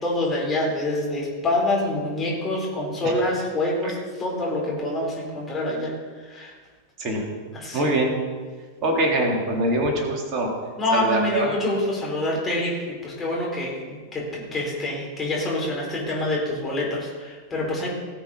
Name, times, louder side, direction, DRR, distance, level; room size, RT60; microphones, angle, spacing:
voice 1, 0.0-6.5 7.5-7.9 10.8-17.9, left 1 dB, 15° left, -4 dB, 4.3 m, -26 dB
voice 2, 7.7-8.1 8.8-10.5 10.9-11.5, right 1 dB, 35° right, 0 dB, 3.5 m, -23 dB
19.0 x 7.0 x 5.6 m, 1.5 s
figure-of-eight pair, 90°, 0 cm